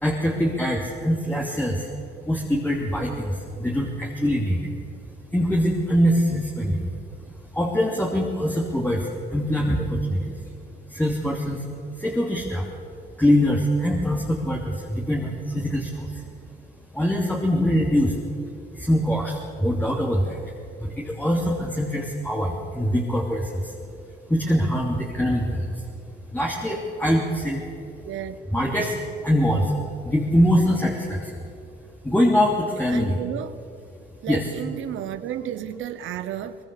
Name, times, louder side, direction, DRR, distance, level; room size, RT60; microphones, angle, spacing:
voice 1, 0.0-1.9 2.3-4.7 5.3-6.9 7.5-10.3 10.9-11.6 12.0-12.7 13.2-16.2 16.9-18.2 18.7-20.4 20.8-23.7 24.3-25.8 26.3-27.6 28.5-29.0 29.2-29.7 30.0-31.5 32.0-33.2 34.3-34.5, equal, 10° left, -2 dB, 2.9 m, -23 dB
voice 2, 28.1-28.4 29.5-29.7 32.9-33.6 34.2-36.6, right 10 dB, 80° right, 11 dB, 1.0 m, -32 dB
22.5 x 22.0 x 6.8 m, 2.5 s
cardioid pair, 90°, 20 cm